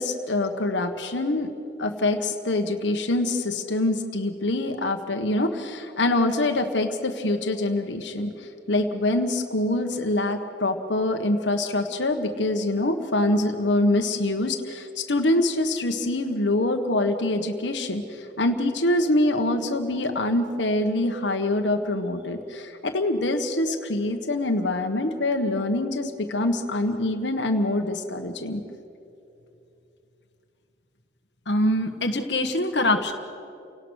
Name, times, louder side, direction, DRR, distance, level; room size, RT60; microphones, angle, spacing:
voice 1, 0.0-1.5 1.8-28.6, left 2 dB, 90° left, 5 dB, 1.5 m, -25 dB
voice 2, 31.5-33.1, left 1 dB, 70° left, 4 dB, 1.5 m, -23 dB
29.5 x 18.0 x 6.5 m, 2.8 s
head